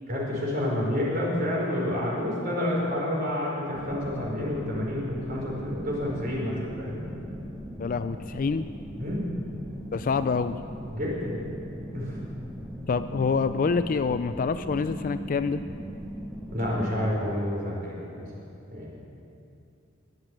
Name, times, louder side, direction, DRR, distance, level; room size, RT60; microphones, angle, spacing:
voice 1, 0.1-7.0 9.0-9.3 10.9-11.5 11.9-12.2 16.5-18.3 18.7-18.9, left 1 dB, 45° right, -3 dB, 4.8 m, -29 dB
sound 1, 3.7-17.1, equal, ahead, 1.1 m, -39 dB
voice 2, 7.8-8.7 9.9-10.6 12.9-15.6, left 5 dB, 40° left, 11 dB, 0.4 m, -26 dB
22.0 x 7.9 x 7.6 m, 2.7 s
head